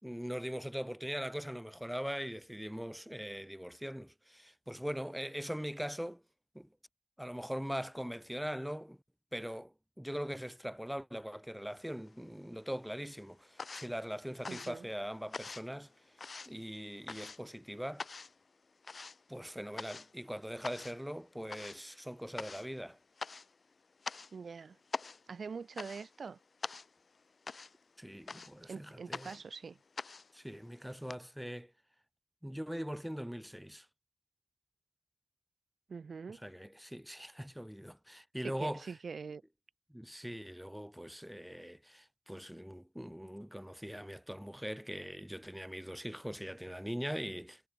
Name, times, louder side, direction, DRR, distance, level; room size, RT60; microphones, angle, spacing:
voice 1, 0.0-6.2 6.5-6.7 7.2-9.0 9.3-15.9 16.4-18.1 19.3-23.0 28.0-29.4 30.3-31.7 32.4-33.9 36.3-38.9 39.9-47.7, equal, ahead, 4.3 m, -41 dB
sound 1, 11.8-12.6 12.9-31.2, left 4 dB, 45° left, 1.3 m, -46 dB
voice 2, 14.5-14.9 24.3-24.8 25.3-26.4 28.7-29.8 35.9-36.4 38.4-39.4, right 5 dB, 60° right, 2.8 m, -44 dB
wide cardioid pair, 120°, 0 cm